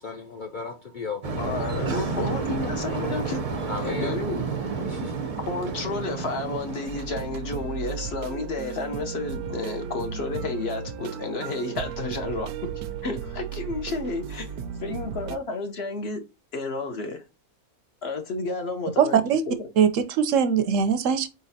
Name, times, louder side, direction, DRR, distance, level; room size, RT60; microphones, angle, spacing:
voice 1, 0.0-1.4 3.7-4.1 4.8-5.2, left 4 dB, 70° left, 0.4 m, -35 dB
sound 1, 1.2-7.7, right 4 dB, 50° right, 0.4 m, -31 dB
voice 2, 1.4-3.4 3.8-4.4 5.4-12.5 13.0-14.5 14.8-16.2 16.5-17.2 18.0-19.7, left 3 dB, 55° left, 0.8 m, -31 dB
sound 2, 6.9-15.4, right 7 dB, 90° right, 1.1 m, -35 dB
voice 3, 19.0-19.4 19.8-21.3, right 7 dB, 70° right, 0.9 m, -21 dB
4.5 x 4.0 x 2.6 m
omnidirectional pair, 1.5 m